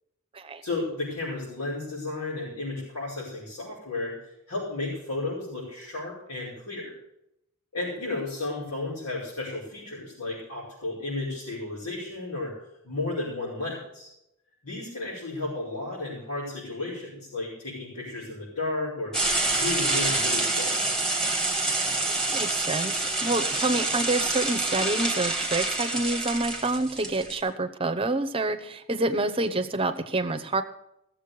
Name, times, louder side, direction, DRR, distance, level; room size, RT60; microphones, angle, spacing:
voice 1, 0.6-6.9 7.7-12.5 12.8-14.1 14.6-19.1 19.4-20.9, left 2 dB, 90° left, -9 dB, 5.6 m, -33 dB
sound 1, 19.1-27.4, right 2 dB, 5° left, 1.7 m, -27 dB
voice 2, 22.1-30.6, right 2 dB, 25° right, 6 dB, 0.8 m, -28 dB
16.5 x 7.4 x 6.8 m, 0.81 s
head